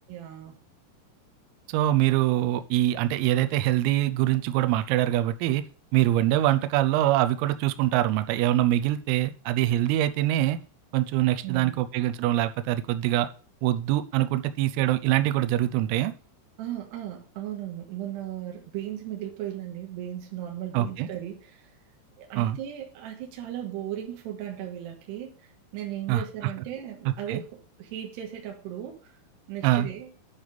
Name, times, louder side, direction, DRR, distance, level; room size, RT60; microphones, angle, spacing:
voice 1, 0.1-0.5 11.4-11.8 16.6-21.7 22.2-29.0 29.5-30.1, right 11 dB, 65° right, 1 dB, 3.0 m, -36 dB
voice 2, 1.7-5.6 5.9-10.6 10.9-13.3 13.6-16.1 20.7-21.1 22.4-22.6 26.1-26.2 27.1-27.4 29.6-29.9, right 14 dB, 90° right, 10 dB, 3.3 m, -24 dB
10.5 x 4.9 x 5.3 m, 0.41 s
omnidirectional pair, 5.9 m